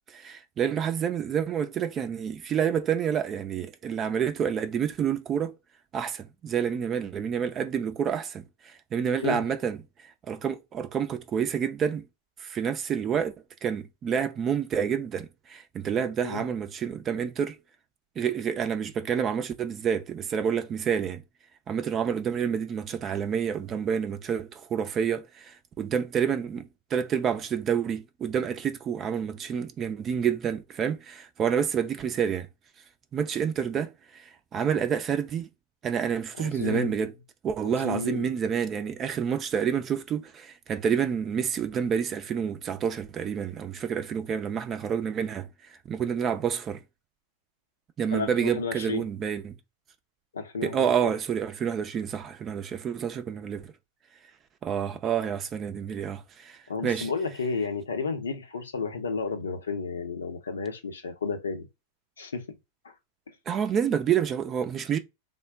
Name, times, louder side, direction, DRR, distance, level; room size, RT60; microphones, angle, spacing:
voice 1, 0.1-5.5 5.9-9.8 10.3-12.0 12.4-13.3 13.6-17.6 18.2-21.2 21.7-32.5 33.1-35.5 35.8-37.1 37.4-45.5 45.9-46.8 48.0-49.6 50.6-53.7 54.6-57.1 63.5-65.0, right 8 dB, 25° right, 0.6 m, -28 dB
voice 2, 36.4-37.0 37.6-38.4 48.1-49.1 50.3-50.9 56.7-61.7 62.2-62.5 62.8-62.9, left 4 dB, 70° left, 0.7 m, -32 dB
3.6 x 2.2 x 3.5 m
figure-of-eight pair, 90°, 0 cm